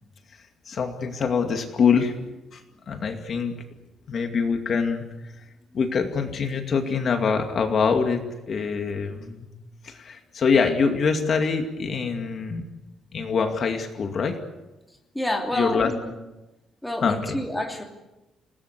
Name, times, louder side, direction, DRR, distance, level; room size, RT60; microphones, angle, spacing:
voice 1, 0.7-2.1 2.5-2.6 2.9-3.5 4.1-5.0 5.4-5.5 5.7-8.2 8.5-9.5 9.8-12.7 13.1-14.4 15.5-15.9 17.0-17.4, left 5 dB, 40° left, 4 dB, 2.4 m, -24 dB
voice 2, 15.1-16.1 16.8-17.8, left 1 dB, 5° left, 1 dB, 3.0 m, -28 dB
29.0 x 19.0 x 8.4 m, 1.0 s
cardioid pair, 175°, 0 cm